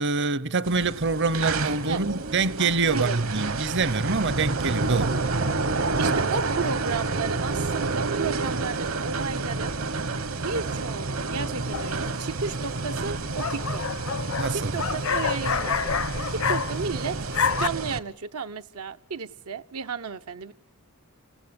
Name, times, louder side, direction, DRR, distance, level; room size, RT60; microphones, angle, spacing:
voice 1, 0.0-5.1 14.4-14.9, right 3 dB, 55° right, 0.9 m, -25 dB
sound 1, 0.6-18.0, right 3 dB, 70° right, 1.4 m, -29 dB
voice 2, 2.9-3.2 5.0-5.2 6.0-9.8 10.4-13.8 14.5-15.9 16.3-17.2 17.6-20.5, right 5 dB, 85° right, 0.9 m, -33 dB
sound 2, 11.7-12.2 13.1-17.0 17.2-17.7, left 6 dB, 75° left, 1.0 m, -28 dB
28.0 x 16.5 x 9.6 m
head